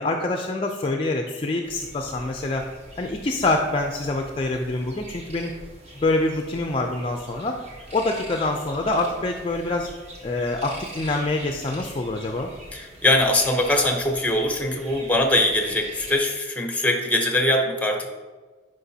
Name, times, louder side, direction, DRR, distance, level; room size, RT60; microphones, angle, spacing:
voice 1, 0.0-2.7 3.0-5.5 5.9-7.6 7.9-9.9 10.2-12.5, left 2 dB, 30° left, 3 dB, 0.4 m, -25 dB
sound 1, 1.6-16.2, right 1 dB, 35° right, 1.2 m, -43 dB
voice 2, 12.7-18.1, left 1 dB, 10° left, 3 dB, 0.8 m, -22 dB
9.9 x 5.1 x 2.8 m, 1.4 s
head